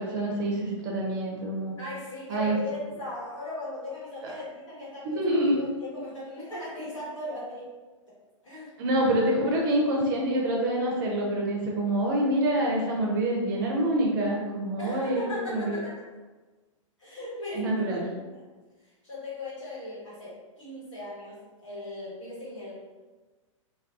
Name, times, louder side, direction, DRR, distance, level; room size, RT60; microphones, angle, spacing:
voice 1, 0.0-1.7 2.3-2.6 4.2-4.3 5.0-5.6 8.8-15.8 17.5-18.1, right 1 dB, 40° right, -2 dB, 0.5 m, -26 dB
voice 2, 1.8-7.7 8.4-8.7 14.8-15.9 17.0-17.8 18.1-18.4 18.8-22.7, left 1 dB, 70° left, -8 dB, 1.2 m, -38 dB
2.3 x 2.2 x 2.4 m, 1.3 s
figure-of-eight pair, 105°, 17 cm